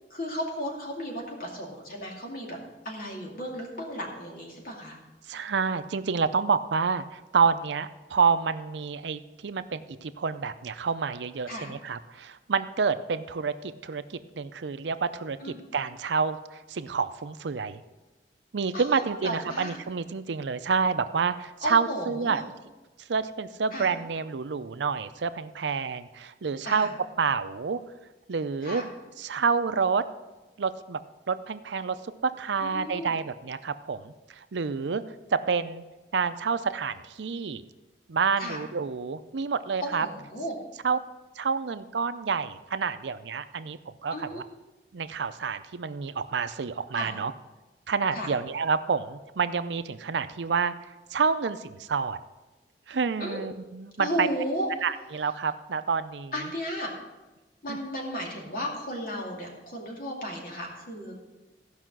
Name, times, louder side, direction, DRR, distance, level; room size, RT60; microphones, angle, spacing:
voice 1, 0.1-2.6 2.8-5.0 11.5-11.7 15.4-15.6 18.7-19.8 21.6-22.4 23.7-23.9 26.6-26.9 28.6-28.8 32.6-33.1 38.4-38.6 39.8-40.5 44.1-44.4 46.9-47.1 48.1-48.3 53.2-53.4 54.0-54.7 56.3-56.9 57.6-61.1, equal, 55° left, -1 dB, 2.5 m, -34 dB
voice 2, 5.3-15.4 15.7-17.8 18.5-22.4 23.1-26.9 27.2-27.8 28.3-28.8 29.2-30.0 30.6-31.0 31.3-32.0 32.2-35.0 35.3-35.8 36.1-37.6 38.1-40.1 40.8-41.0 41.4-44.4 44.9-47.3 47.9-50.7 51.1-52.2 52.9-54.3 54.8-56.3 57.7-57.8, right 5 dB, 75° right, 12 dB, 0.5 m, -28 dB
14.5 x 5.6 x 6.1 m, 1.1 s
head